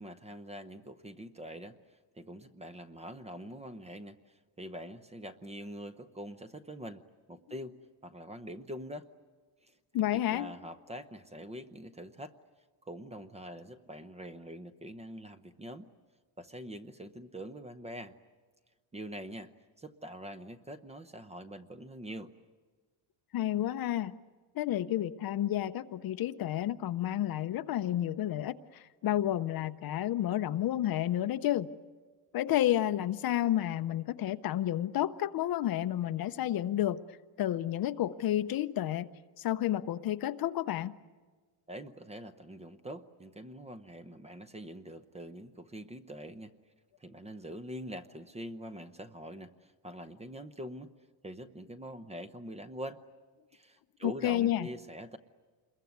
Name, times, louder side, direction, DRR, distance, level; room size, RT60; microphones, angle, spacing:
voice 1, 0.0-7.0 7.3-7.8 8.0-9.1 9.6-9.8 10.1-12.3 12.8-15.9 16.4-18.2 18.9-19.5 19.8-22.3 41.7-46.5 47.0-50.9 51.2-53.0 53.5-55.2, right 1 dB, 15° right, 11 dB, 0.7 m, -44 dB
voice 2, 9.9-10.5 23.3-24.1 24.5-31.7 32.3-37.0 37.4-39.1 39.4-41.0 54.0-54.7, left 12 dB, 45° left, 12 dB, 0.7 m, -30 dB
27.0 x 22.0 x 9.4 m, 1.4 s
cardioid pair, 150°, 49 cm